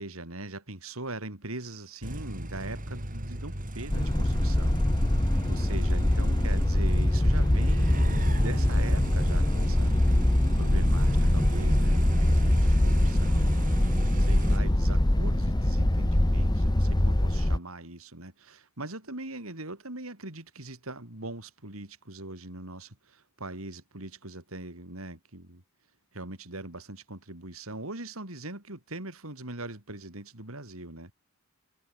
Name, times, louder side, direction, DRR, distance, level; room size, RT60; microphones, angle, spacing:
voice 1, 0.0-4.8 5.5-10.0 10.6-25.6 26.1-31.1, right 2 dB, 80° right, 4.4 m, -41 dB
sound 1, 2.0-14.6, right 1 dB, 40° right, 4.2 m, -35 dB
sound 2, 3.9-17.6, left 1 dB, 20° left, 1.0 m, -23 dB
head